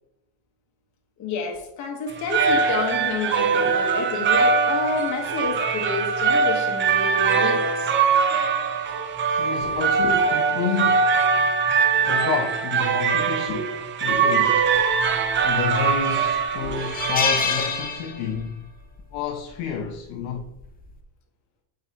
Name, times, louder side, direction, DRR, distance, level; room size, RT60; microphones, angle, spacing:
voice 1, 1.2-7.9 10.0-10.1 13.5-13.6 14.1-14.5 16.6-16.8, left 4 dB, 40° left, 1.2 m, -29 dB
sound 1, 2.1-18.0, right 5 dB, 30° right, 0.5 m, -22 dB
voice 2, 9.4-11.1 11.6-13.6 14.0-14.6 15.4-18.7 19.1-20.5, left 6 dB, 85° left, 0.9 m, -29 dB
sound 2, 15.4-15.9 16.3-16.4 16.8-18.6 18.9-19.1 20.3-20.6, left 5 dB, 20° left, 0.5 m, -26 dB
9.2 x 3.9 x 2.8 m
cardioid pair, 140°, 43 cm